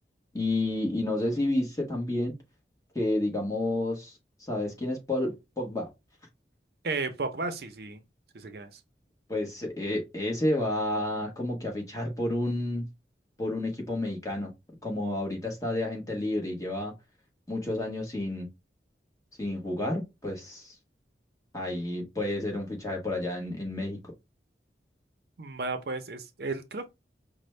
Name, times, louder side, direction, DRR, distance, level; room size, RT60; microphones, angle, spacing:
voice 1, 0.3-2.3 2.9-4.2 4.5-5.9 9.3-12.8 13.4-14.5 14.8-16.9 17.5-18.5 19.4-20.7 21.5-24.0, left 1 dB, 20° left, 1.1 m, -30 dB
voice 2, 6.8-8.0 8.3-8.8 25.4-26.9, right 3 dB, 65° right, 0.6 m, -34 dB
5.1 x 2.1 x 3.2 m
head